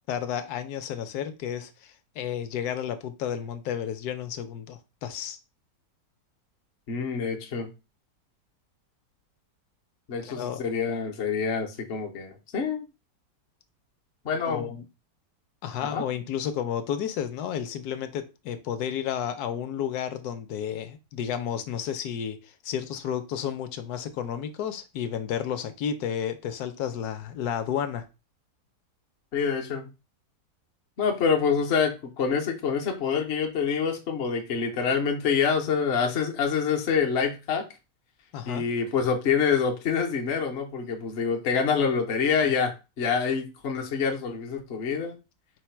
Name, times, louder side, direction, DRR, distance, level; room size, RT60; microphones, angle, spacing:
voice 1, 0.1-5.4 10.2-10.6 14.4-14.9 15.6-28.1 38.3-38.7 42.4-42.6, left 9 dB, 70° left, 9 dB, 1.0 m, -32 dB
voice 2, 6.9-7.7 10.1-12.8 14.2-14.7 15.8-16.0 29.3-29.9 31.0-37.6 38.4-45.2, left 6 dB, 55° left, 2 dB, 0.7 m, -26 dB
4.7 x 2.2 x 4.4 m, 0.28 s
omnidirectional pair, 1.9 m